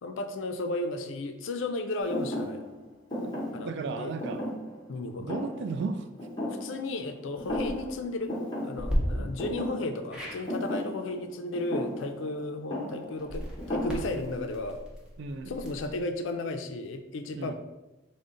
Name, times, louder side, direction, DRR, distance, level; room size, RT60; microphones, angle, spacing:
voice 1, 0.0-2.7 3.5-4.2 4.9-5.3 6.6-8.4 8.6-14.8 15.5-17.5, left 2 dB, 80° left, 7 dB, 0.4 m, -34 dB
Thump thud, 2.1-7.1 7.4-8.0 8.3-14.4, left 1 dB, 25° left, 0.8 m, -36 dB
voice 2, 3.2-4.4 5.2-6.1 9.1-9.3 15.2-15.5 17.3-17.5, right 4 dB, 65° right, 9 dB, 0.3 m, -35 dB
sound 1, 7.4-7.7 8.8-9.0 10.1-10.4 13.2-16.0, equal, 5° right, 0.7 m, -35 dB
3.7 x 2.1 x 3.7 m, 1.0 s
head